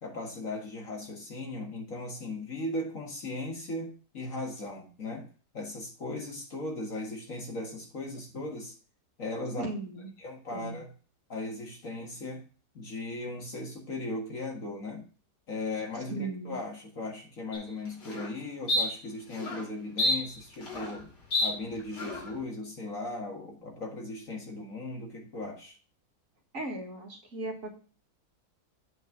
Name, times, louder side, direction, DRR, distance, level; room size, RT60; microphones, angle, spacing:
voice 1, 0.0-5.3 5.5-8.8 9.2-9.7 10.2-10.9 11.3-12.4 12.7-15.0 15.5-21.1 21.4-25.8, left 2 dB, 50° left, 1 dB, 2.0 m, -37 dB
voice 2, 9.6-10.1 10.5-10.8 16.1-16.6 26.5-27.7, right 2 dB, 50° right, 0 dB, 2.2 m, -37 dB
sound 1, 17.5-17.6 18.0-18.3 18.7-18.8 19.3-19.6 20.0-21.0 21.3-21.5 22.0-22.3, left 1 dB, 80° left, 3.0 m, -29 dB
8.1 x 4.6 x 5.9 m, 0.38 s
omnidirectional pair, 1.8 m